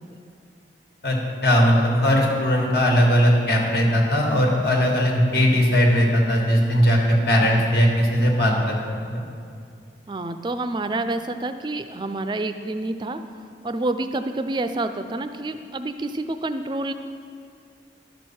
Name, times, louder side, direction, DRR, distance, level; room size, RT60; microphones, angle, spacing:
voice 1, 1.0-8.8 9.1-9.2, equal, 65° left, -1 dB, 1.6 m, -19 dB
voice 2, 10.1-13.2 13.6-16.9, right 2 dB, 25° right, 9 dB, 0.4 m, -28 dB
12.5 x 6.4 x 4.3 m, 2.3 s
head